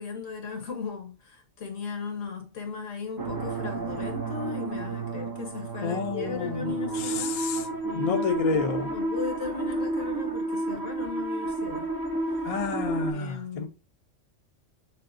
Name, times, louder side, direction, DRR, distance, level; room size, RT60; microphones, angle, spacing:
voice 1, 0.0-7.5 7.8-11.9 12.3-12.5 13.1-13.7, left 5 dB, 80° left, 1.6 m, -37 dB
sound 1, 3.2-13.1, right 2 dB, 25° right, 0.5 m, -31 dB
voice 2, 5.8-6.7 7.0-7.6 7.9-8.9 12.4-13.7, left 5 dB, 35° left, 0.6 m, -29 dB
6.3 x 2.1 x 2.6 m
omnidirectional pair, 1.3 m